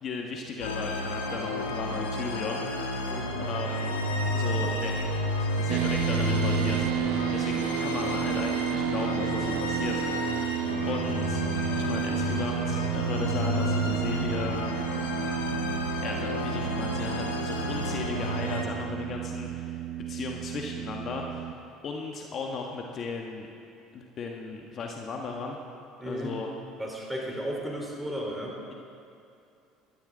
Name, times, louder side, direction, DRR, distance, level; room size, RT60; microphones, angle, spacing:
voice 1, 0.0-3.0 3.4-4.0 4.3-5.1 5.4-10.3 10.8-11.4 11.7-14.6 16.0-21.5 21.8-23.5 23.9-25.6 26.0-26.5, left 4 dB, 45° left, 1 dB, 1.3 m, -36 dB
sound 1, 0.6-18.6, left 1 dB, 90° left, 1.5 m, -31 dB
voice 2, 3.1-3.4 26.0-26.3 26.8-28.6, equal, 5° right, -2 dB, 4.1 m, -34 dB
sound 2, 5.7-21.5, right 12 dB, 65° right, 0.5 m, -32 dB
17.5 x 13.0 x 3.9 m, 2.6 s
hypercardioid pair, 65°, 0 cm